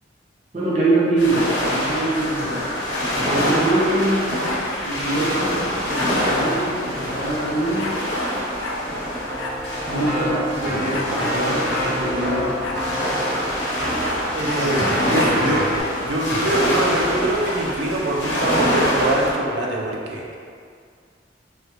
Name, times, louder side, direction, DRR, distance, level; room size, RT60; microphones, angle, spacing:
voice 1, 0.5-2.6 3.2-4.3 4.8-8.0 9.9-12.6 14.5-15.5, right 2 dB, 35° right, -7 dB, 0.7 m, -24 dB
sound 1, 1.2-19.3, equal, 75° left, 0.8 m, -25 dB
sound 2, 2.9-3.8 4.4-4.6 6.0-6.4 7.3-7.4 7.6-8.0 8.6-8.8 9.4-9.6 9.9-10.0 10.9-11.4 11.7-11.9 12.6-12.8 14.0-14.7, left 3 dB, 90° left, 0.3 m, -33 dB
Keyboard (musical), 9.2-15.8, equal, 5° right, 0.8 m, -29 dB
voice 2, 14.3-15.6 16.0-20.4, right 1 dB, 75° right, -2 dB, 0.5 m, -23 dB
3.2 x 2.5 x 2.9 m, 2.2 s
head